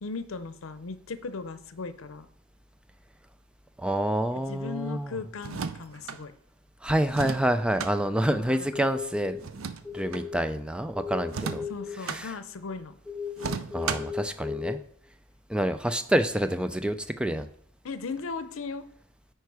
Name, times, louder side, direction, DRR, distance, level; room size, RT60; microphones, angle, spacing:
voice 1, 0.0-2.3 4.3-6.3 8.3-8.6 11.7-12.9 13.4-13.5 17.8-18.9, left 4 dB, 85° left, 12 dB, 0.6 m, -37 dB
voice 2, 3.8-5.1 6.8-9.6 9.9-11.6 12.1-12.3 13.7-14.8 15.5-17.5, right 1 dB, 5° right, 10 dB, 0.4 m, -27 dB
sound 1, 5.4-6.2 7.1-7.9 9.4-10.3 11.3-12.2 13.4-14.2, right 5 dB, 85° right, 0.5 m, -34 dB
sound 2, 8.7-9.4 9.8-10.4 10.9-11.9 13.0-14.7, left 7 dB, 15° left, 1.2 m, -35 dB
9.2 x 4.6 x 4.8 m, 0.64 s
head